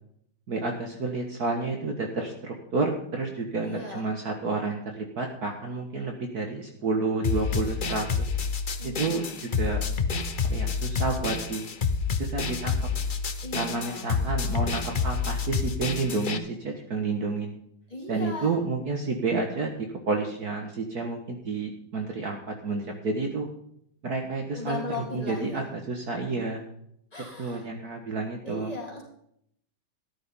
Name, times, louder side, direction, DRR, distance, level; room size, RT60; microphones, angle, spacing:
voice 1, 0.5-8.3 8.8-9.8 10.5-11.7 12.2-12.8 13.5-17.6 18.1-23.5 24.0-24.8 25.1-26.7 27.4-28.7, right 3 dB, 50° right, 2 dB, 1.8 m, -30 dB
voice 2, 3.6-4.1 8.8-9.4 13.4-14.1 17.9-18.6 24.5-25.7 27.1-27.7 28.4-29.0, left 2 dB, 15° left, -4 dB, 3.8 m, -37 dB
sound 1, 7.2-16.4, left 5 dB, 70° left, 0.4 m, -28 dB
13.5 x 11.0 x 3.7 m, 0.70 s
omnidirectional pair, 2.2 m